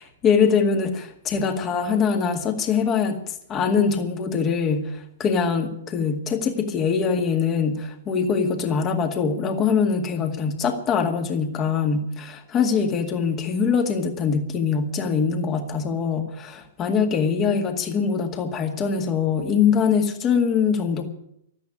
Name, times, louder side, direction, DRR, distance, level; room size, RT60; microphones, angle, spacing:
voice 1, 0.0-21.1, left 6 dB, 25° left, 5 dB, 2.0 m, -23 dB
13.5 x 9.2 x 10.0 m, 0.75 s
figure-of-eight pair, 110°, 0 cm